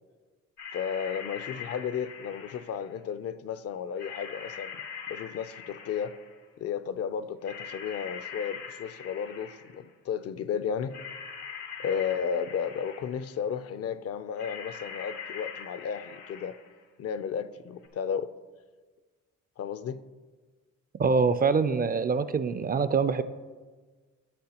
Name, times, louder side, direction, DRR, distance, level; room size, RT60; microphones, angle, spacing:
sound 1, 0.6-2.9 4.0-6.4 7.4-9.9 10.9-13.3 14.4-16.8 17.8-17.9, left 7 dB, 80° left, 1.4 m, -42 dB
voice 1, 0.7-4.8 5.1-6.1 6.6-11.0 11.8-16.5 17.0-18.3 19.6-20.0, left 7 dB, 55° left, 14 dB, 0.5 m, -33 dB
voice 2, 21.0-23.2, right 5 dB, 30° right, 12 dB, 0.4 m, -24 dB
11.5 x 8.2 x 2.9 m, 1.4 s
cardioid pair, 90°, 30 cm